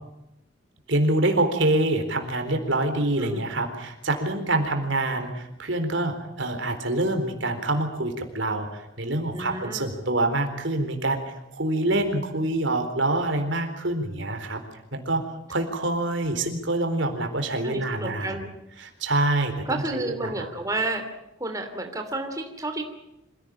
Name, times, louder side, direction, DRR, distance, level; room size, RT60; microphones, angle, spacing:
voice 1, 0.9-11.2 11.5-14.6 14.9-15.2 15.5-18.4 18.8-20.5, right 2 dB, 70° right, 6 dB, 4.1 m, -26 dB
voice 2, 9.3-9.9 17.6-18.5 19.7-21.0 21.4-22.8, right 2 dB, 15° right, 4 dB, 2.9 m, -31 dB
26.5 x 17.0 x 9.1 m, 0.86 s
head